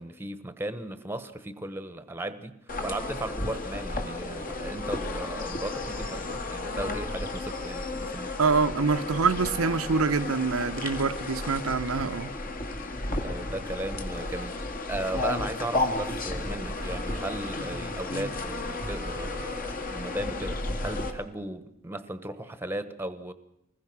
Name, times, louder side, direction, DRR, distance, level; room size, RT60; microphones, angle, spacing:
voice 1, 0.0-8.3 13.2-23.3, right 1 dB, 10° right, 1.1 m, -36 dB
sound 1, 2.7-21.1, left 2 dB, 40° left, 2.1 m, -33 dB
voice 2, 8.4-12.3, right 4 dB, 85° right, 0.8 m, -25 dB
25.0 x 20.5 x 6.1 m
head